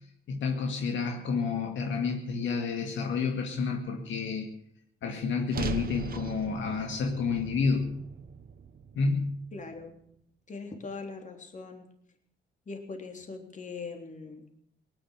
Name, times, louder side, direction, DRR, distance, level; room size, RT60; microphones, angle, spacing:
voice 1, 0.3-4.5 5.0-8.0 8.9-9.4, left 5 dB, 70° left, 2 dB, 2.3 m, -30 dB
sound 1, 5.5-9.8, right 6 dB, 50° right, 1.2 m, -39 dB
voice 2, 9.5-10.0 10.5-11.9 12.7-14.5, left 4 dB, 40° left, 3 dB, 3.5 m, -41 dB
18.5 x 10.5 x 7.4 m, 0.69 s
cardioid pair, 90°, 20 cm